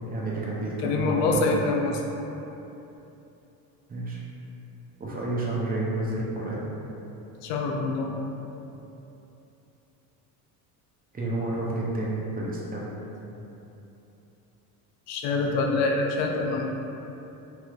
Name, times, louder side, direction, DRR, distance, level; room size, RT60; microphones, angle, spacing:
voice 1, 0.0-1.5 3.9-4.2 5.0-6.7 11.1-12.9, right 2 dB, 20° right, -5 dB, 0.5 m, -30 dB
voice 2, 0.8-2.0 7.4-8.2 15.1-16.7, left 3 dB, 85° left, 1 dB, 0.5 m, -25 dB
3.1 x 2.9 x 2.3 m, 3.0 s
supercardioid pair, 90°, 47 cm